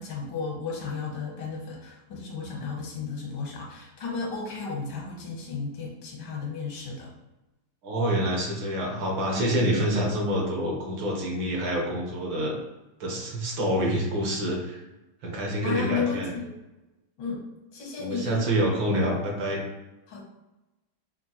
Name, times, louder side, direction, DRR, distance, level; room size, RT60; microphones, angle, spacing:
voice 1, 0.0-7.1 9.3-9.9 15.6-16.6 17.2-17.5 17.7-18.5 20.1-20.2, left 5 dB, 85° left, -2 dB, 1.9 m, -33 dB
voice 2, 7.8-12.6 13.0-14.8 15.2-16.3 18.0-19.6, right 1 dB, 70° right, -1 dB, 1.8 m, -27 dB
5.5 x 2.5 x 2.9 m, 1.0 s
omnidirectional pair, 2.2 m